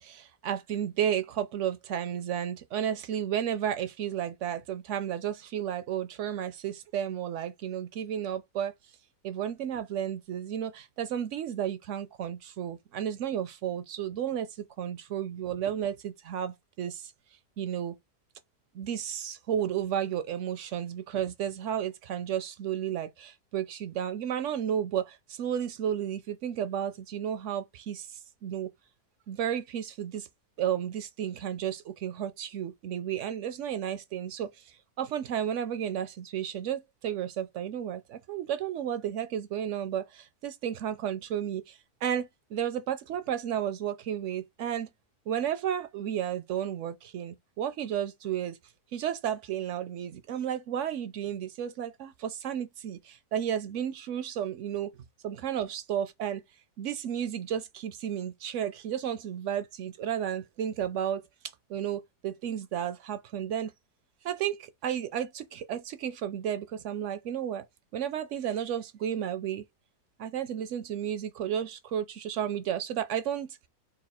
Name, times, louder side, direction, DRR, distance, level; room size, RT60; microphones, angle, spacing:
voice 1, 0.0-8.7 9.2-17.1 17.6-18.0 18.7-28.7 29.3-30.3 30.6-44.9 45.3-48.6 48.9-54.9 55.2-56.4 56.8-61.2 61.7-63.7 64.2-67.7 67.9-69.6 70.2-73.6, right 9 dB, 70° right, 0.7 m, -33 dB
4.0 x 2.4 x 4.2 m
omnidirectional pair, 1.7 m